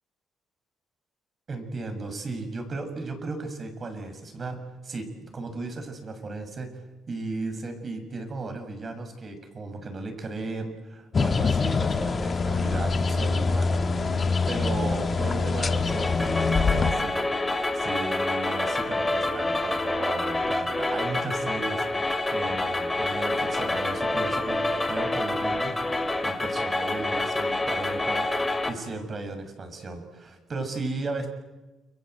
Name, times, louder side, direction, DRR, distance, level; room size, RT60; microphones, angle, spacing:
voice 1, 1.5-6.7 7.1-14.1 14.5-21.9 22.3-25.8 26.2-28.3 28.7-31.3, right 3 dB, 45° right, 7 dB, 6.9 m, -35 dB
sound 1, 11.1-16.9, left 4 dB, 40° left, 1.7 m, -25 dB
sound 2, 15.9-28.7, left 2 dB, 20° left, 4.6 m, -27 dB
30.0 x 23.5 x 8.1 m, 1.1 s
supercardioid pair, 65°, 0 cm